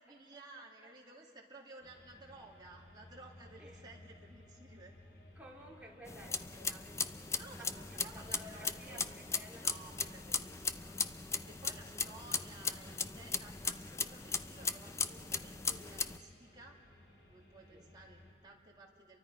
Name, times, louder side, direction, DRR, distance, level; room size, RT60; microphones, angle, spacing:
voice 1, 0.0-4.9 7.4-9.0 9.6-11.0 11.4-16.8 17.3-19.2, right 2 dB, 25° right, -2 dB, 2.6 m, -55 dB
sound 1, 1.8-18.3, left 1 dB, 75° left, 3.4 m, -59 dB
voice 2, 3.6-3.9 5.3-9.6 11.8-12.2 17.7-17.9, equal, 10° right, -3 dB, 2.5 m, -55 dB
sound 2, 6.1-16.2, left 5 dB, 15° left, 0.5 m, -38 dB
30.0 x 23.5 x 4.8 m, 2.6 s
head